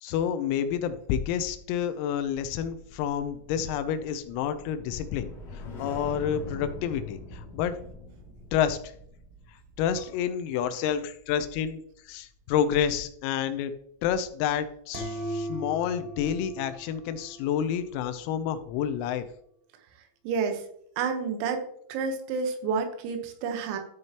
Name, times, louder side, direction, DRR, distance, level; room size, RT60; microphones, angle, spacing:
voice 1, 0.0-7.8 8.5-8.8 9.8-13.7 14.0-19.3, left 9 dB, 85° left, 11 dB, 3.4 m, -29 dB
sound 1, 2.8-12.6 12.9-13.2, left 2 dB, 50° left, 2.3 m, -44 dB
sound 2, 14.9-17.7, right 1 dB, 65° right, 2.6 m, -37 dB
voice 2, 20.3-20.6 21.0-21.6 21.9-23.8, right 5 dB, 85° right, 5 dB, 3.9 m, -29 dB
13.0 x 6.4 x 2.9 m, 0.67 s
omnidirectional pair, 6.0 m